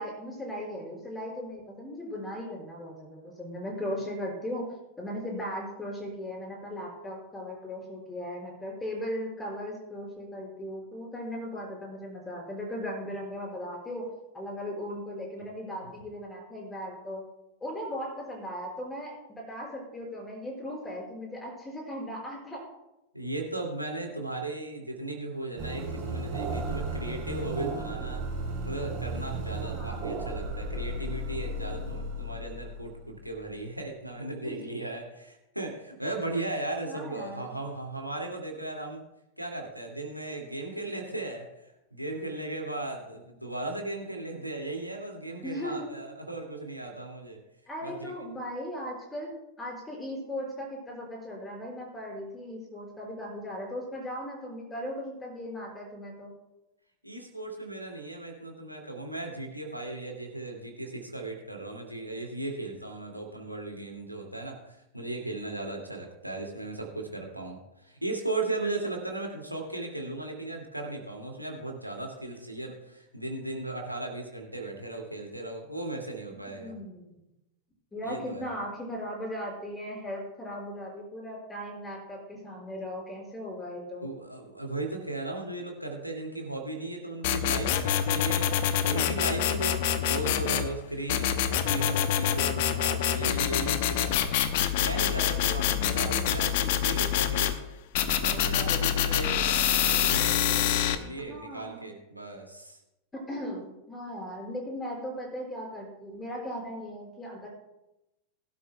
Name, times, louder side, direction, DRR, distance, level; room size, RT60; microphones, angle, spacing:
voice 1, 0.0-4.6 5.0-14.0 14.3-17.2 17.6-22.7 29.5-30.2 34.4-34.7 36.8-37.5 45.4-45.9 47.7-56.3 76.6-77.2 77.9-84.1 95.5-96.2 101.3-101.9 103.1-107.5, equal, 15° left, -1 dB, 5.6 m, -38 dB
voice 2, 23.1-28.3 28.6-39.0 39.4-47.4 47.8-48.1 57.0-76.7 78.0-78.5 84.0-88.6 88.8-94.4 94.8-97.6 98.2-102.8, right 2 dB, 90° right, 1 dB, 2.3 m, -36 dB
sound 1, 25.6-33.5, right 2 dB, 40° right, 3.9 m, -34 dB
sound 2, 87.2-90.7 91.1-97.5 97.9-100.9, left 10 dB, 50° left, 0.9 m, -26 dB
20.5 x 12.0 x 2.3 m, 0.92 s
figure-of-eight pair, 90°, 0 cm